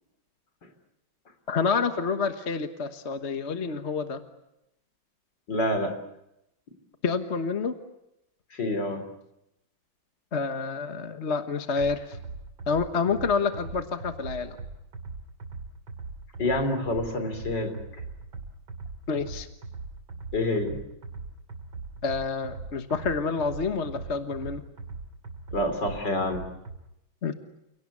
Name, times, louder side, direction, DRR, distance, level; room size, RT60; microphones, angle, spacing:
voice 1, 1.5-4.2 7.0-7.8 10.3-12.0 12.7-14.6 19.1-19.5 22.0-24.6 27.2-27.3, left 5 dB, 40° left, 8 dB, 1.4 m, -28 dB
voice 2, 5.5-5.9 8.5-9.0 16.4-17.7 20.3-20.8 25.5-26.4, left 1 dB, 60° left, 7 dB, 4.1 m, -27 dB
sound 1, 11.8-26.8, right 3 dB, 75° right, 3.5 m, -40 dB
29.5 x 18.0 x 9.7 m, 0.86 s
omnidirectional pair, 2.2 m